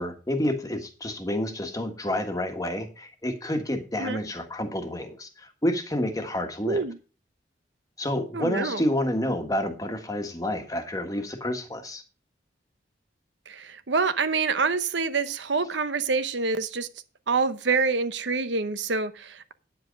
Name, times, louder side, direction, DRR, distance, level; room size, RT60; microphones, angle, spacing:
voice 1, 0.0-6.9 8.0-12.0, left 1 dB, 20° left, 1.4 m, -29 dB
voice 2, 6.6-7.0 8.3-8.8 13.5-16.9 17.3-19.5, right 4 dB, 80° right, 0.9 m, -26 dB
9.8 x 7.7 x 5.2 m
head